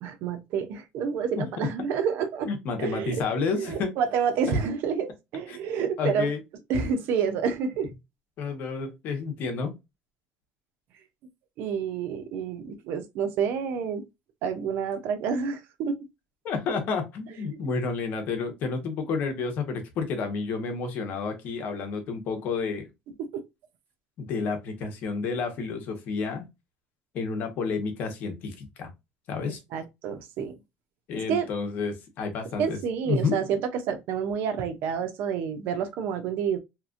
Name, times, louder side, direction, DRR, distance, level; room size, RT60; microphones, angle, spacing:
voice 1, 0.0-2.5 2.8-3.2 3.5-6.3 6.7-7.9 11.6-14.0 14.4-16.0 17.5-17.6 23.3-23.4 29.7-30.6 31.3-31.5 32.6-36.6, right 6 dB, 65° right, 0.6 m, -28 dB
voice 2, 1.4-1.7 2.5-3.9 5.5-5.6 6.0-6.4 8.4-9.7 16.4-22.8 24.2-26.4 27.1-28.9 29.3-29.6 31.1-32.8 33.1-33.4, left 4 dB, 55° left, 0.9 m, -30 dB
2.9 x 2.4 x 2.4 m
cardioid pair, 140°, 4 cm